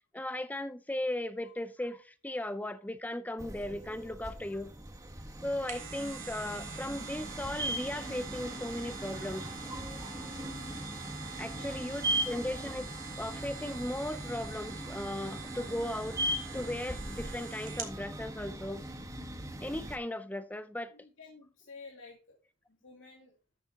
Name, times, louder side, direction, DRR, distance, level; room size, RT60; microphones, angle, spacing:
voice 1, 0.1-4.7 5.4-9.5 11.4-12.9 13.2-16.2 16.5-18.8 19.6-21.0, left 1 dB, 10° left, 0.5 m, -37 dB
sound 1, 3.4-20.0, right 1 dB, 15° right, 1.2 m, -39 dB
sound 2, 5.4-18.0 18.4-18.5, right 6 dB, 85° right, 2.3 m, -46 dB
voice 2, 10.4-10.7 11.5-12.1 20.9-22.4 22.7-23.3, left 4 dB, 80° left, 2.4 m, -53 dB
13.0 x 6.8 x 2.9 m
head